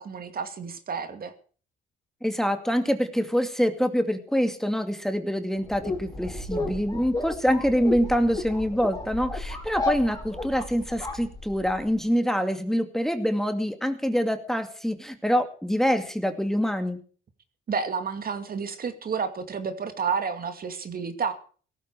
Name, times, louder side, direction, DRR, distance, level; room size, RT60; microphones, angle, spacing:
voice 1, 0.0-1.3 17.7-21.3, right 6 dB, 50° right, 8 dB, 2.4 m, -30 dB
voice 2, 2.2-17.0, equal, ahead, 7 dB, 2.4 m, -25 dB
sound 1, 5.6-11.9, left 2 dB, 20° left, 4.6 m, -33 dB
17.0 x 14.0 x 4.8 m, 0.42 s
cardioid pair, 90°, 20 cm